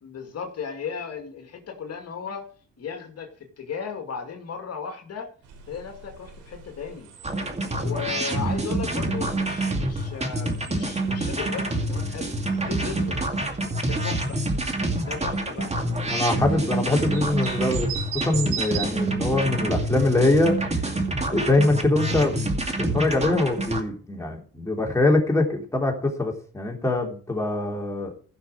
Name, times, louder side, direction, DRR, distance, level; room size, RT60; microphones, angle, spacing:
voice 1, 0.0-2.5 2.8-5.3 5.7-7.1 7.8-12.3 12.7-13.4 13.8-14.4 15.0-15.8, left 6 dB, 55° left, 4 dB, 2.3 m, -36 dB
sound 1, 5.4-18.9, right 7 dB, 90° right, 3.6 m, -41 dB
sound 2, 7.2-23.8, right 2 dB, 20° right, 2.4 m, -27 dB
voice 2, 16.1-17.9 18.2-20.6 21.3-22.7 22.9-28.1, left 2 dB, 10° left, 0 dB, 3.6 m, -23 dB
15.5 x 6.3 x 4.8 m, 0.42 s
cardioid pair, 90°, 30 cm